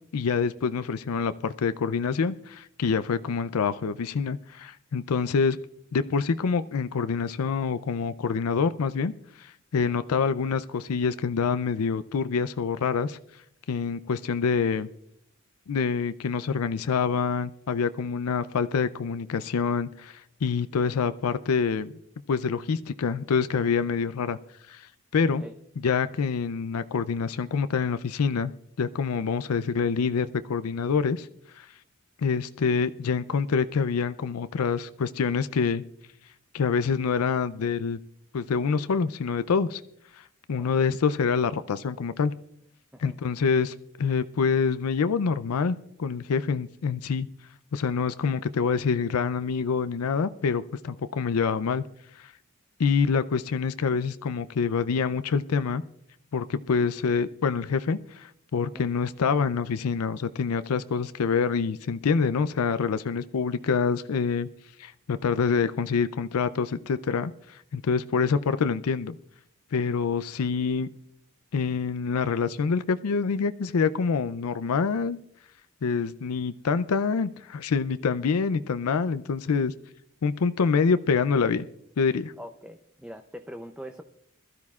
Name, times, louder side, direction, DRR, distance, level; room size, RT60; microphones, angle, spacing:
voice 1, 0.1-5.6 5.9-9.1 9.4-13.2 13.7-14.9 15.7-21.9 22.3-24.4 24.7-24.9 25.1-25.4 25.8-28.5 28.8-31.3 31.6-31.7 32.2-35.8 36.5-38.0 38.3-39.8 40.5-42.3 43.0-47.3 47.7-51.8 52.2-52.3 52.8-55.8 56.3-64.5 64.8-69.2 69.7-70.9 71.5-75.2 75.8-79.7 80.2-81.7 82.0-82.3, left 5 dB, 80° left, 12 dB, 0.5 m, -26 dB
voice 2, 40.5-40.9 42.9-43.2 50.9-51.0 58.7-58.9 82.4-84.0, equal, 5° right, 5 dB, 0.5 m, -43 dB
21.0 x 13.0 x 2.4 m, 0.75 s
head